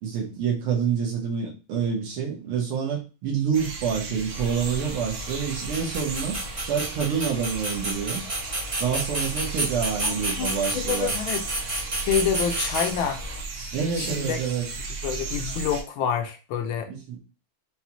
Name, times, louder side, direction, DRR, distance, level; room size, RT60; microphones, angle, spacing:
voice 1, 0.0-8.2 8.8-11.1 13.7-14.7 16.9-17.2, right 7 dB, 80° right, -1 dB, 2.0 m, -27 dB
sound 1, 3.5-15.8, right 3 dB, 60° right, 1.0 m, -36 dB
sound 2, 4.3-13.4, right 1 dB, 25° right, 0.7 m, -31 dB
voice 2, 10.0-11.4 12.0-13.2 14.0-14.4 15.0-16.9, left 7 dB, 70° left, 6 dB, 1.4 m, -27 dB
5.4 x 2.3 x 2.9 m, 0.31 s
omnidirectional pair, 2.4 m